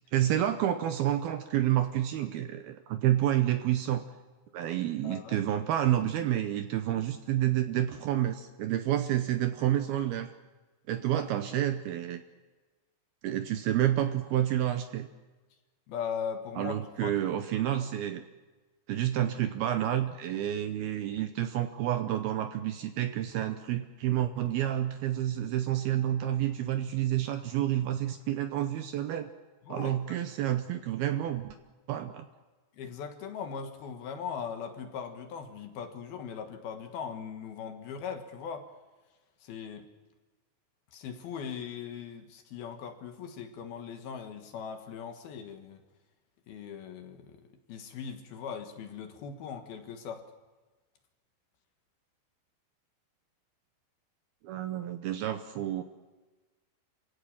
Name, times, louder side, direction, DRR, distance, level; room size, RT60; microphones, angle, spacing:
voice 1, 0.1-4.0 4.5-10.3 10.9-12.2 13.2-15.1 16.6-18.2 18.9-29.3 29.7-31.6 31.9-32.3 54.4-55.8, right 12 dB, 75° right, 8 dB, 2.4 m, -29 dB
voice 2, 5.0-5.4 11.0-11.1 15.9-16.8 17.0-17.3 29.7-30.0 32.7-38.7 39.4-39.9 40.9-45.8 46.5-50.2, left 7 dB, 65° left, 5 dB, 3.1 m, -39 dB
27.0 x 16.5 x 7.3 m, 1.2 s
omnidirectional pair, 5.2 m